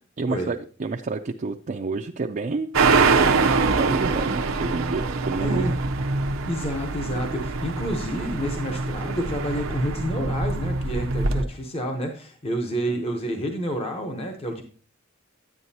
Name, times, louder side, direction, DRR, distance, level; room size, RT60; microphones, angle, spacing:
voice 1, 0.2-2.9 3.8-5.8 12.9-13.0, right 3 dB, 40° right, 3 dB, 0.4 m, -29 dB
sound 1, 2.7-11.4, right 4 dB, 85° right, 0.7 m, -24 dB
voice 2, 5.4-5.7 6.4-14.6, equal, 30° left, 3 dB, 0.9 m, -29 dB
9.6 x 9.3 x 2.8 m, 0.41 s
head